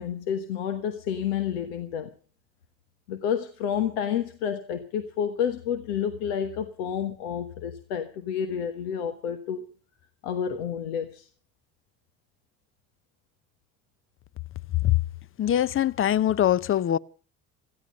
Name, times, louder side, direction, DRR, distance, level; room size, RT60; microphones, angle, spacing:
voice 1, 0.0-2.1 3.1-9.7 10.2-11.3, left 8 dB, 85° left, 1.3 m, -30 dB
voice 2, 15.4-17.0, left 12 dB, 40° left, 0.7 m, -22 dB
17.0 x 14.5 x 5.4 m
supercardioid pair, 70°, 32 cm